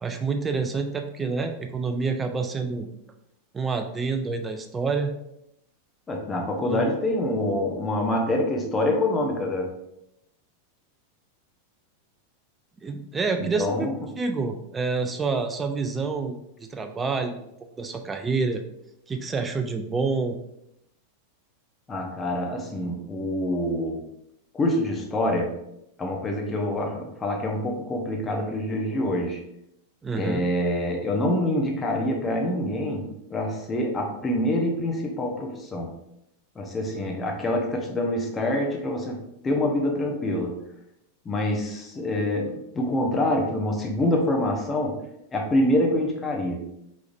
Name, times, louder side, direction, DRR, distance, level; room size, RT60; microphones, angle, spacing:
voice 1, 0.0-2.9 3.5-5.1 6.7-6.8 12.8-17.5 17.8-18.6 19.1-20.4 30.0-30.4, right 4 dB, 15° right, 6 dB, 0.4 m, -28 dB
voice 2, 6.1-9.7 13.4-13.9 21.9-24.0 24.5-25.6 26.0-29.4 30.2-35.9 36.6-39.2 39.4-40.6 41.2-45.0 45.3-46.7, left 1 dB, 15° left, 1 dB, 0.8 m, -26 dB
4.8 x 3.1 x 2.6 m, 0.80 s
figure-of-eight pair, 90°, 0 cm